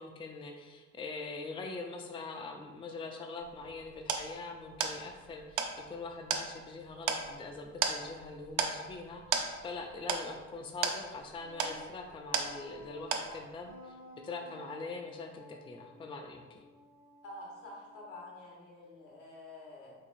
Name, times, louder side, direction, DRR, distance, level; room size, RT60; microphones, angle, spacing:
voice 1, 0.0-14.0 14.2-16.6, left 3 dB, 20° left, 3 dB, 0.4 m, -43 dB
sound 1, 3.4-12.9 13.1-13.7, right 6 dB, 80° right, 0.5 m, -35 dB
Wind instrument woodwind instrument, 11.3-18.3, left 1 dB, 60° left, 0.9 m, -55 dB
voice 2, 17.2-19.9, left 1 dB, 90° left, -3 dB, 1.3 m, -48 dB
4.4 x 2.9 x 2.6 m, 1.3 s
cardioid pair, 90°, 30 cm